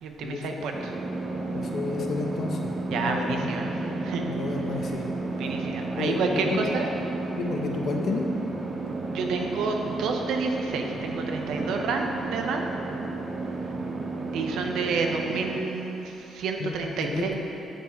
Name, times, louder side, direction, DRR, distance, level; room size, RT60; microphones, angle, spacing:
voice 1, 0.0-0.9 2.9-4.2 4.8-5.0 5.4-6.9 9.1-12.6 14.3-17.3, right 4 dB, 85° right, 3 dB, 0.9 m, -29 dB
sound 1, 0.7-15.6, right 3 dB, 45° right, 1.2 m, -32 dB
voice 2, 1.5-5.0 6.0-6.6 7.4-8.3 13.7-13.8 16.6-16.7 17.0-17.4, left 4 dB, 60° left, 1 dB, 1.1 m, -32 dB
9.1 x 7.1 x 4.7 m, 3.0 s
cardioid pair, 90°, 0 cm